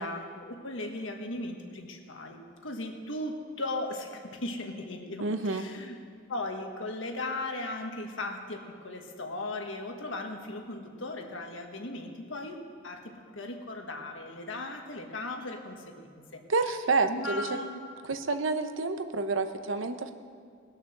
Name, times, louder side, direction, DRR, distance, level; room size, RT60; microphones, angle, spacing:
voice 1, 0.0-5.9 6.3-12.6 12.8-16.4 17.1-17.8, left 2 dB, 80° left, 3 dB, 1.5 m, -37 dB
voice 2, 5.2-5.6 16.5-17.5 18.1-20.1, right 3 dB, 85° right, 8 dB, 0.8 m, -29 dB
19.5 x 6.5 x 6.6 m, 2.3 s
head